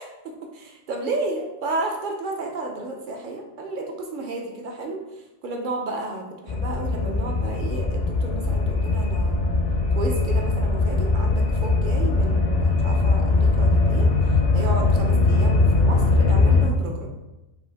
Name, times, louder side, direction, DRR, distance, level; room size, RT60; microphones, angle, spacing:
voice 1, 0.0-5.0 5.4-9.4 9.9-17.1, right 2 dB, 55° right, 1 dB, 0.8 m, -32 dB
sound 1, 6.5-16.7, left 3 dB, 50° left, 0.6 m, -20 dB
5.1 x 2.5 x 3.4 m, 0.98 s
omnidirectional pair, 1.2 m